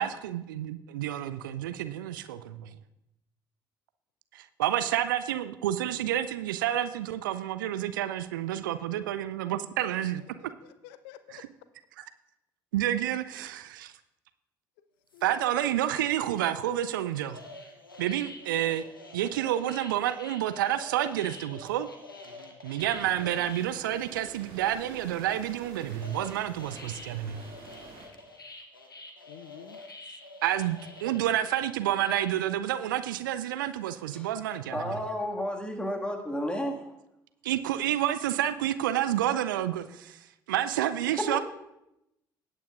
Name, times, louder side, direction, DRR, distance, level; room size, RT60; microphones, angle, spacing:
voice 1, 0.0-2.8 4.3-10.2 11.3-11.5 12.7-13.9 15.2-17.4 18.0-18.8 19.1-21.9 22.6-27.4 30.4-34.7 37.4-41.4, right 12 dB, 70° right, 12 dB, 0.4 m, -29 dB
voice 2, 10.6-11.4 15.1-15.9 22.3-22.6 29.3-29.8, left 12 dB, 60° left, 13 dB, 0.4 m, -50 dB
sound 1, 15.1-15.4 16.9-23.7 24.1-24.2 24.3-24.7 25.1-32.5, left 2 dB, 85° left, 0.9 m, -47 dB
sound 2, 22.8-28.1, right 4 dB, 55° right, 2.3 m, -48 dB
voice 3, 34.7-37.0 41.1-41.4, equal, 10° left, 2 dB, 1.9 m, -32 dB
18.5 x 8.5 x 2.5 m, 0.88 s
figure-of-eight pair, 50°, 11 cm